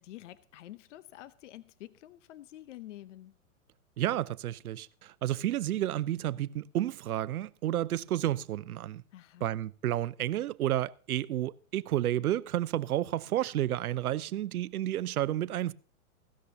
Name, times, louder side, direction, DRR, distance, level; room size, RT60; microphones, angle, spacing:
voice 1, 0.0-3.3 9.1-9.5, left 14 dB, 55° left, 0.8 m, -48 dB
voice 2, 4.0-9.0 9.4-15.7, right 13 dB, 80° right, 0.7 m, -31 dB
16.5 x 13.0 x 2.8 m
hypercardioid pair, 140°, 43 cm